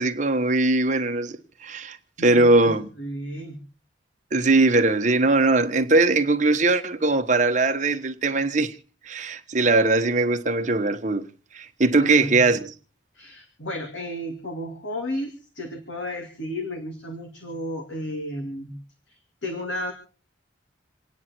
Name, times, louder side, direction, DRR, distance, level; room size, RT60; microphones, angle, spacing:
voice 1, 0.0-1.4 1.6-2.9 4.3-8.7 9.0-11.2 11.5-12.7, right 2 dB, 40° right, 1.2 m, -20 dB
voice 2, 2.2-3.6 12.0-12.5 13.1-18.7 19.1-19.9, equal, 75° left, 2.7 m, -33 dB
28.0 x 9.7 x 4.5 m
head